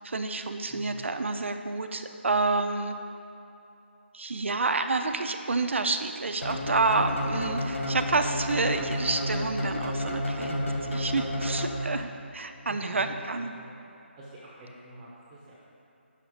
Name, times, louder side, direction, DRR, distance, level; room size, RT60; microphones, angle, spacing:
voice 1, 0.0-2.9 4.1-10.5 10.9-13.5, right 3 dB, 75° right, 7 dB, 0.6 m, -29 dB
voice 2, 0.7-1.0 6.9-7.1 10.5-10.8 12.6-13.8 14.2-15.6, equal, 15° right, -7 dB, 0.8 m, -45 dB
sound 1, 6.4-12.2, left 1 dB, 85° left, 1.2 m, -31 dB
6.5 x 5.7 x 5.0 m, 2.8 s
figure-of-eight pair, 160°, 7 cm